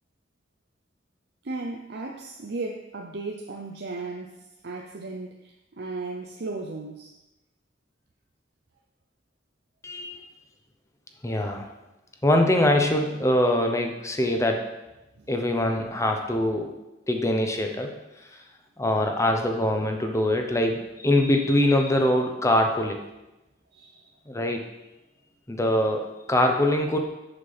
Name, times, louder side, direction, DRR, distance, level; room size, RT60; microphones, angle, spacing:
voice 1, 1.4-7.1 15.2-15.3 23.7-24.1, right 3 dB, 65° right, 1 dB, 0.6 m, -36 dB
voice 2, 9.8-10.2 11.2-11.7 12.2-14.7 15.3-16.8 17.1-17.9 18.8-23.0 24.3-24.6 25.5-27.0, left 1 dB, 15° left, 3 dB, 0.8 m, -23 dB
6.6 x 5.9 x 5.6 m, 0.99 s
head